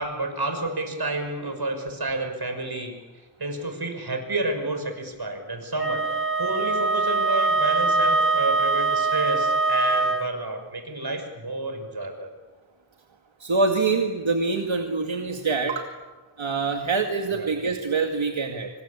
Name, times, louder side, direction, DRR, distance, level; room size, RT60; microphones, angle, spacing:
voice 1, 0.0-2.9 3.4-12.3 17.3-17.5, right 2 dB, 55° right, 6 dB, 6.0 m, -30 dB
Wind instrument woodwind instrument, 5.8-10.3, right 3 dB, 25° right, 1.7 m, -23 dB
voice 2, 13.4-15.9 16.4-18.7, right 4 dB, 75° right, 3 dB, 2.3 m, -25 dB
26.5 x 25.5 x 8.7 m, 1.3 s
wide cardioid pair, 50°, 47 cm